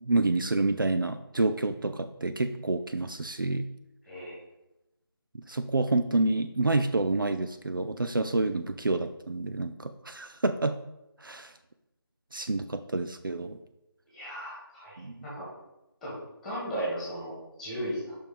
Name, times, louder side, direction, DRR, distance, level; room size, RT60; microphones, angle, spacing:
voice 1, 0.0-3.7 5.3-10.8 11.2-11.5 12.3-13.6 15.0-15.3, right 2 dB, 60° right, 9 dB, 0.5 m, -28 dB
voice 2, 4.1-4.4 14.1-15.5 16.0-18.2, equal, 5° left, -8 dB, 1.7 m, -36 dB
6.9 x 5.5 x 5.2 m, 0.93 s
figure-of-eight pair, 160°, 13 cm